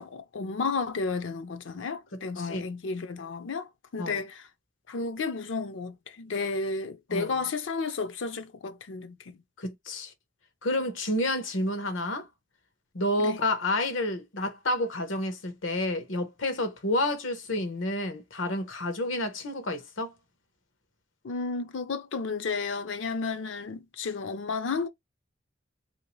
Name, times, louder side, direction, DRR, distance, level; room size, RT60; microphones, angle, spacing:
voice 1, 0.0-4.5 4.9-9.1 13.2-13.4 21.2-24.9, left 4 dB, 70° left, 0.5 m, -32 dB
voice 2, 2.1-2.6 4.0-4.2 7.1-7.3 9.6-10.1 10.6-12.3 12.9-20.1, left 1 dB, 90° left, 1.0 m, -30 dB
2.9 x 2.8 x 3.1 m
head